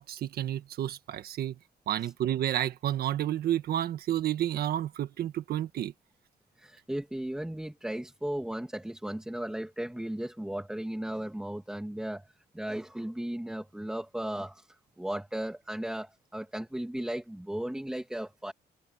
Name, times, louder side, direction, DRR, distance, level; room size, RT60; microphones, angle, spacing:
voice 1, 0.0-1.6 1.9-5.9, right 12 dB, 70° right, 1.6 m, -30 dB
voice 2, 6.6-12.3 12.5-14.7 15.0-18.5, right 1 dB, 5° right, 1.9 m, -36 dB
cardioid pair, 150°, 17 cm